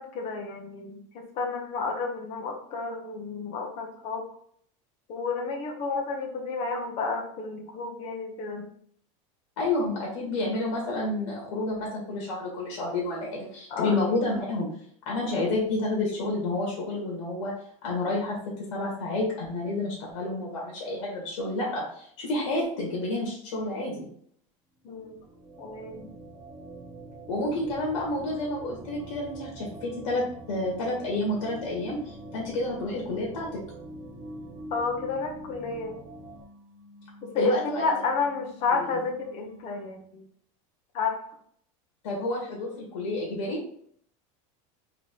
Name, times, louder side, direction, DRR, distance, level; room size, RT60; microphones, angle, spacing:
voice 1, 0.0-4.3 5.1-8.7 13.7-14.0 24.8-25.2 25.6-26.1 34.7-36.0 37.2-40.3 40.9-41.2, left 4 dB, 40° left, 3 dB, 0.9 m, -31 dB
voice 2, 9.6-14.7 15.1-17.5 17.8-18.4 18.7-24.1 27.3-33.5 37.4-37.9 38.8-38.9 42.0-43.6, left 2 dB, 85° left, -3 dB, 1.7 m, -29 dB
sound 1, 24.9-36.4, right 1 dB, 10° right, 0.5 m, -44 dB
sound 2, 30.3-40.0, left 1 dB, 65° right, 1.0 m, -53 dB
3.8 x 3.0 x 3.8 m, 0.62 s
supercardioid pair, 150°, 16 cm